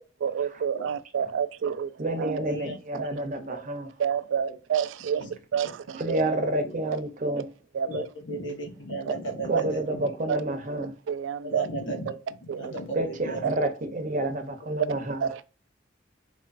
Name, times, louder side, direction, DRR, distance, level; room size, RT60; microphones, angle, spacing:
voice 1, 0.2-2.4 2.9-3.1 4.0-6.2 7.7-8.1 9.1-9.2 9.5-9.6 10.3-10.4 11.1-11.7 12.5-12.7 13.4-13.7 15.2-15.5, right 7 dB, 75° right, 0.3 m, -29 dB
voice 2, 2.0-3.9 6.0-7.5 9.5-10.9 12.9-15.3, right 1 dB, 40° right, 0.6 m, -29 dB
voice 3, 7.8-10.2 10.7-10.8 11.4-12.1 12.5-13.4, right 2 dB, 70° left, 1.2 m, -35 dB
4.0 x 3.0 x 2.4 m
head